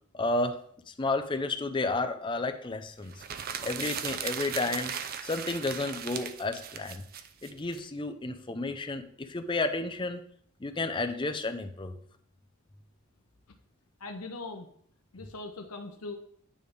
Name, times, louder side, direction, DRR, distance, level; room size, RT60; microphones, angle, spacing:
voice 1, 0.1-0.6 0.9-3.1 3.6-5.0 5.2-7.0 7.4-10.2 10.6-12.0, left 2 dB, 20° left, 6 dB, 0.5 m, -31 dB
sound 1, 3.1-7.8, right 8 dB, 40° right, 0.4 m, -37 dB
voice 2, 14.0-14.7 15.1-16.2, left 3 dB, 85° left, 4 dB, 0.8 m, -40 dB
9.3 x 3.3 x 5.2 m, 0.62 s
head